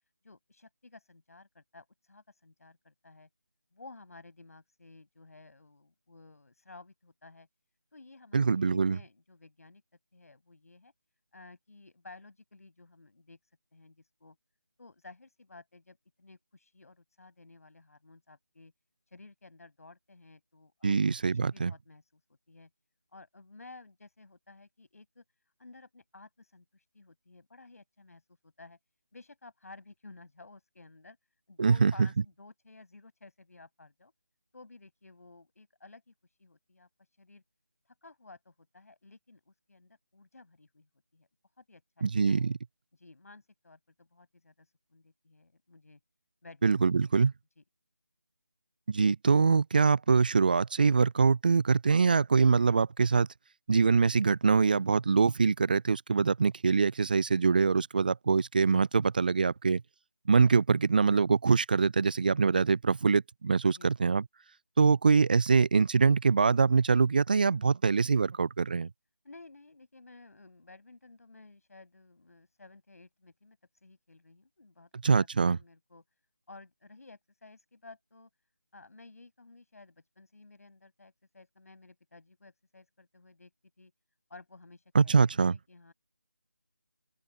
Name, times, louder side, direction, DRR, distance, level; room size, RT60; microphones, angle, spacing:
voice 1, 0.2-3.3 3.7-7.5 7.9-9.8 10.1-10.9 11.3-13.4 13.7-14.4 14.8-18.7 19.1-21.0 21.3-22.1 22.5-22.7 23.1-25.2 25.6-28.8 29.1-31.2 31.5-34.1 34.5-37.4 38.0-41.3 41.6-42.5 42.9-46.0 46.4-46.7 47.6-47.7 63.7-63.9 69.2-74.9 75.1-75.3 75.5-76.0 76.5-78.3 78.7-83.5 83.8-83.9 84.3-85.9, left 3 dB, 60° left, 6.1 m, -54 dB
voice 2, 8.3-9.0 20.8-21.7 31.6-31.9 42.0-42.6 46.6-47.3 48.9-53.3 53.7-59.8 60.3-64.2 64.8-68.9 75.0-75.6 84.9-85.5, right 5 dB, 30° right, 0.4 m, -24 dB
open air
figure-of-eight pair, 160°, 9 cm